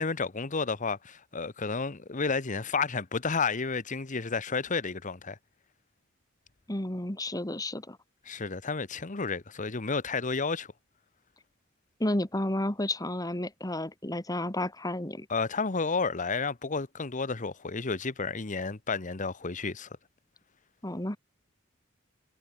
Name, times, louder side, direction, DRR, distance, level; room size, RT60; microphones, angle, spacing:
voice 1, 0.0-5.4 8.3-10.7 15.3-19.9, left 4 dB, 40° left, 1.0 m, -31 dB
voice 2, 6.7-8.0 12.0-15.3 20.8-21.2, left 1 dB, 20° left, 2.0 m, -31 dB
head